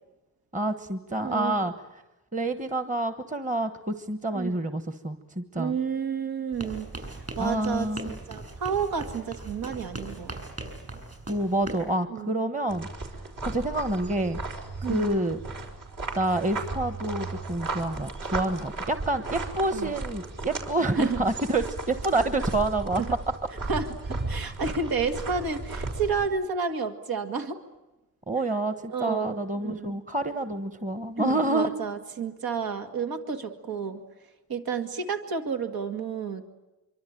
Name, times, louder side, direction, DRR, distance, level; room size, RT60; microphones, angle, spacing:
voice 1, 0.5-1.7 2.3-5.7 7.4-8.1 11.3-12.9 13.4-14.4 14.8-15.4 16.1-23.0 24.5-24.6 28.3-31.7, right 1 dB, 20° right, 9 dB, 1.3 m, -28 dB
voice 2, 1.2-1.6 4.3-4.6 5.6-6.9 7.4-10.3 12.1-12.3 14.8-15.1 19.7-20.0 20.9-21.2 23.0-23.2 23.7-27.6 28.9-30.0 31.2-34.0 34.5-36.5, right 5 dB, 90° right, 6 dB, 2.2 m, -31 dB
sound 1, 6.5-11.9, right 2 dB, 45° right, 7.3 m, -39 dB
sound 2, 12.7-26.2, right 3 dB, 65° right, 5.1 m, -35 dB
26.0 x 24.5 x 9.2 m, 1.0 s
wide cardioid pair, 120°, 35 cm